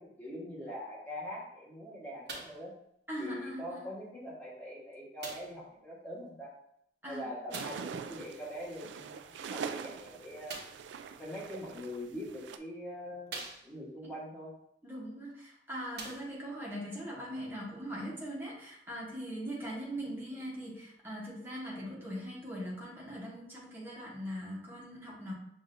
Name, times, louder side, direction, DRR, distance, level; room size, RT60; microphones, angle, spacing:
voice 1, 0.0-2.7 3.2-6.5 7.0-10.5 11.2-13.3 13.6-14.5, equal, 10° left, -7 dB, 1.4 m, -43 dB
sound 1, 2.3-2.7 3.6-3.7 5.2-5.6 7.5-7.9 10.4-10.9 11.9-12.0 12.6-12.7 13.3-14.0 15.2-15.3 15.9-16.6 17.4-17.5, right 3 dB, 60° right, 1.1 m, -44 dB
voice 2, 3.1-3.9 7.0-7.3 14.8-25.3, equal, 10° right, -5 dB, 1.1 m, -41 dB
sound 2, 7.5-12.6, right 6 dB, 80° right, 0.3 m, -43 dB
6.1 x 2.6 x 2.6 m, 0.72 s
head